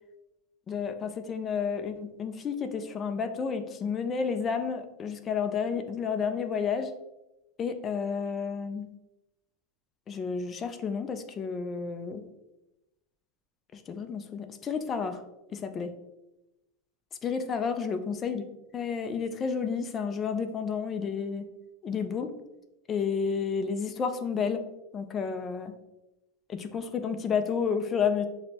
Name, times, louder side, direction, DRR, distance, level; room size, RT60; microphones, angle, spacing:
voice 1, 0.7-6.9 7.6-8.9 10.1-12.2 13.7-15.2 15.5-15.9 17.2-18.4 18.7-21.4 21.8-22.3 22.9-24.6 24.9-25.7 26.5-28.3, left 6 dB, 20° left, 8 dB, 0.3 m, -31 dB
6.0 x 2.1 x 2.7 m, 0.95 s
supercardioid pair, 160°, 0 cm